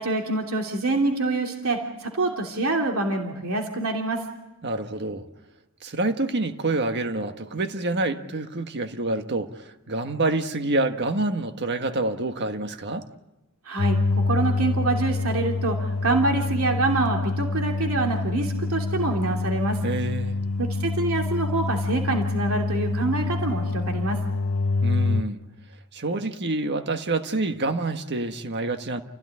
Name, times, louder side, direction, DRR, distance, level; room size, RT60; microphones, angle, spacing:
voice 1, 0.0-4.2 13.6-14.0 14.3-19.8 20.6-24.2, right 2 dB, 70° right, 2 dB, 3.1 m, -26 dB
voice 2, 4.6-5.2 5.8-13.0 19.8-20.4 24.8-25.4 25.9-29.0, right 2 dB, 50° right, 7 dB, 1.6 m, -27 dB
sound 1, 13.8-25.2, left 3 dB, 70° left, 0.9 m, -26 dB
28.5 x 16.5 x 9.9 m, 1.0 s
head